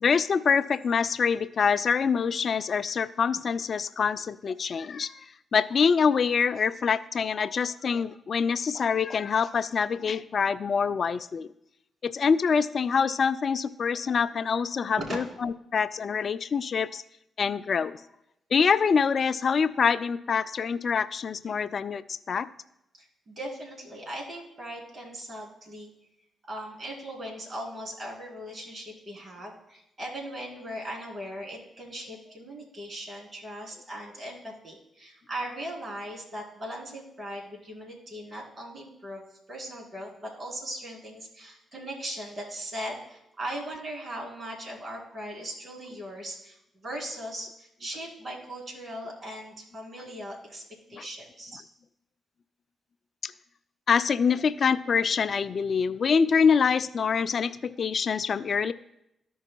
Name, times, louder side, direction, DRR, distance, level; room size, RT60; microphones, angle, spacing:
voice 1, 0.0-5.1 5.5-11.5 12.1-17.0 17.4-18.0 18.5-22.0 22.3-22.5 53.2-53.3 53.9-58.7, left 6 dB, 55° left, 14 dB, 0.3 m, -25 dB
voice 2, 22.9-25.9 26.5-50.6 50.9-51.6, right 1 dB, 55° right, -2 dB, 3.2 m, -39 dB
14.0 x 5.4 x 2.3 m, 0.84 s
hypercardioid pair, 45°, 0 cm